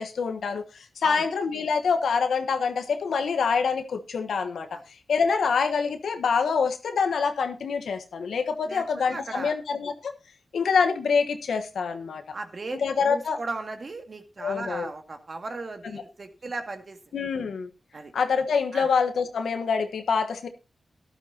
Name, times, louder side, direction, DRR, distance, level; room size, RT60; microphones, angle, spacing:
voice 1, 0.0-4.8 5.1-10.1 10.5-12.2 12.8-13.4 14.4-14.9 15.8-16.0 17.1-17.7 18.1-20.5, left 5 dB, 85° left, 7 dB, 1.2 m, -26 dB
voice 2, 8.7-9.5 12.3-12.8 13.1-17.0 17.9-18.1 18.7-18.9, right 3 dB, 55° right, 5 dB, 2.1 m, -36 dB
13.0 x 11.5 x 2.9 m, 0.29 s
cardioid pair, 45°, 0 cm